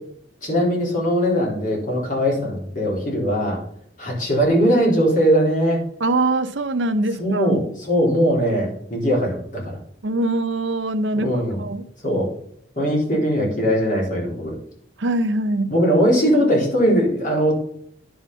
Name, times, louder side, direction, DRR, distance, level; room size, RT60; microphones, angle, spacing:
voice 1, 0.4-3.6 4.0-5.8 7.2-9.8 11.2-11.6 12.0-12.3 12.8-14.5 15.7-17.5, equal, 45° left, -2 dB, 4.0 m, -20 dB
voice 2, 6.0-7.5 10.0-11.8 15.0-15.7, right 2 dB, 80° right, 10 dB, 0.8 m, -23 dB
10.0 x 5.8 x 5.5 m, 0.66 s
head